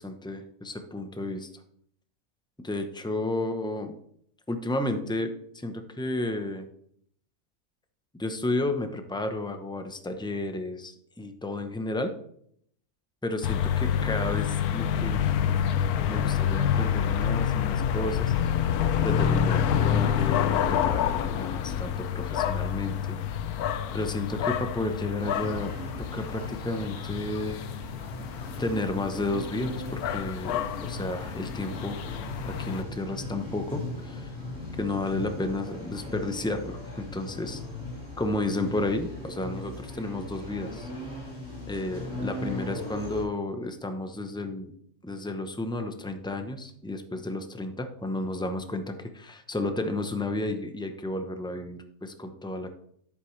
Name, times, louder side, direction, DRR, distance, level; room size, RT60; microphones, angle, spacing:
voice 1, 0.0-1.5 2.6-3.9 4.5-6.6 8.2-12.1 13.2-15.6 16.0-23.2 23.9-27.6 28.6-32.0 32.4-34.3 34.8-37.6 38.2-40.9 41.7-44.7 45.0-52.7, left 2 dB, 5° left, 7 dB, 0.3 m, -32 dB
sound 1, 13.4-32.8, left 9 dB, 80° left, 1.1 m, -28 dB
sound 2, 25.2-43.2, left 2 dB, 50° left, 4.7 m, -38 dB
10.5 x 8.3 x 3.2 m, 0.67 s
omnidirectional pair, 1.6 m